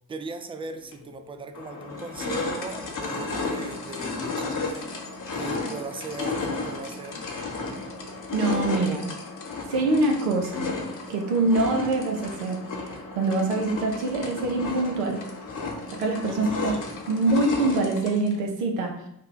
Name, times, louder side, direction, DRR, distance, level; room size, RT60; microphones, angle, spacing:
voice 1, 0.1-4.9 5.3-7.3 16.3-16.9, right 4 dB, 15° right, 7 dB, 0.3 m, -38 dB
sound 1, 0.9-1.0 1.5-18.4, left 3 dB, 45° left, 1.0 m, -33 dB
voice 2, 8.3-9.2 9.7-10.8 11.1-15.2 16.0-16.8 17.1-19.0, right 2 dB, 80° right, 2 dB, 0.7 m, -25 dB
3.2 x 2.1 x 3.8 m, 0.77 s
hypercardioid pair, 40°, 44 cm